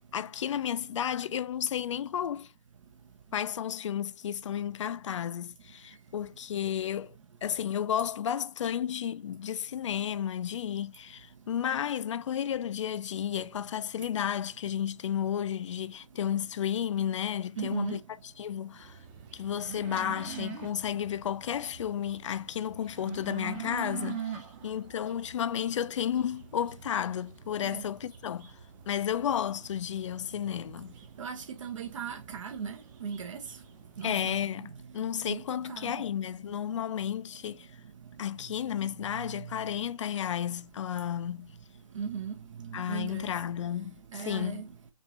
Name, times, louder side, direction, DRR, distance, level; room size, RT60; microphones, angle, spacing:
voice 1, 0.1-2.5 3.3-18.0 18.4-19.0 19.3-28.5 28.9-30.9 34.0-37.7 38.2-41.5 42.7-44.6, left 9 dB, 60° left, 0.4 m, -32 dB
voice 2, 17.6-18.0 27.6-27.8 31.2-33.4 34.0-34.3 35.3-35.4 35.7-36.0 41.9-42.3 42.6-43.3 44.1-44.7, right 6 dB, 65° right, 0.9 m, -37 dB
sound 1, 18.8-34.5, right 8 dB, 20° right, 0.7 m, -45 dB
5.3 x 2.6 x 2.8 m
hypercardioid pair, 155°, 18 cm